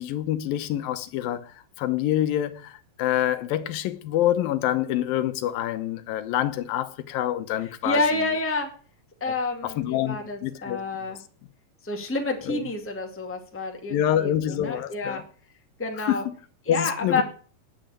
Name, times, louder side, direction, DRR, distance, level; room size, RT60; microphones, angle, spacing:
voice 1, 0.0-8.3 9.3-9.4 9.6-10.2 10.4-10.8 12.4-12.7 13.9-15.2 16.0-16.3 16.7-17.2, left 12 dB, 90° left, 2.8 m, -26 dB
voice 2, 7.8-8.7 9.2-11.2 11.8-15.2 15.8-16.2 16.6-17.2, left 3 dB, 5° left, 1.5 m, -28 dB
9.3 x 8.8 x 9.0 m
omnidirectional pair, 3.9 m